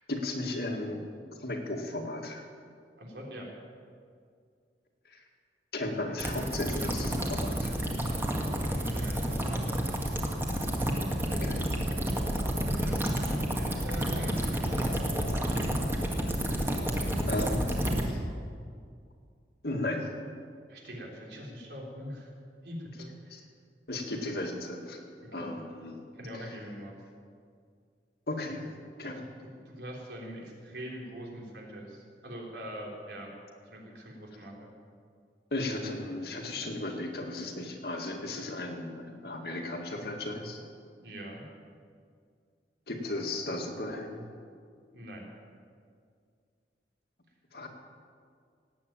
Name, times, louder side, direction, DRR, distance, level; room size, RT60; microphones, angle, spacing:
voice 1, 0.1-1.0 1.4-2.5 5.1-5.2 5.7-7.7 11.3-11.7 17.3-18.2 19.6-20.1 23.3-23.4 23.9-25.0 25.3-26.0 26.3-26.4 28.3-28.6 29.0-29.2 35.5-40.6 42.9-44.2 47.5-47.7, left 2 dB, 60° left, 2 dB, 2.0 m, -35 dB
voice 2, 3.0-3.5 8.7-9.8 12.7-15.1 20.7-22.3 22.6-23.4 25.2-25.5 26.1-27.0 29.4-33.3 33.7-34.7 41.0-41.4 44.9-45.3, equal, 75° right, -1 dB, 3.6 m, -42 dB
sound 1, 6.2-18.0, equal, 15° right, 1.7 m, -30 dB
18.0 x 8.5 x 8.9 m, 2.2 s
head